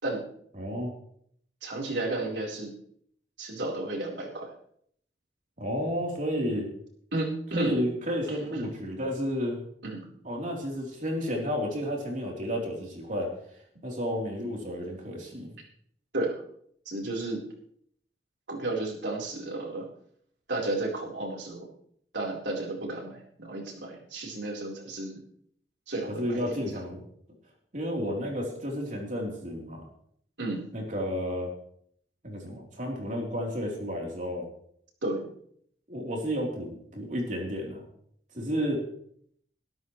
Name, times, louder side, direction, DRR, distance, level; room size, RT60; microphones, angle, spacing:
voice 1, 0.6-0.9 5.6-6.7 7.6-9.6 10.2-13.3 13.8-15.5 26.1-27.0 27.7-29.9 30.7-31.5 32.2-34.5 35.9-37.8 38.3-38.9, equal, 45° right, -1 dB, 3.7 m, -31 dB
voice 2, 1.6-2.7 3.4-4.5 7.1-7.8 8.3-8.7 9.8-10.1 16.1-16.4 16.9-17.4 18.5-19.9 20.5-21.7 22.1-25.2 25.9-26.5 30.4-30.7 35.0-35.3, right 2 dB, 80° right, -1 dB, 4.2 m, -32 dB
22.0 x 13.0 x 3.2 m, 0.66 s
head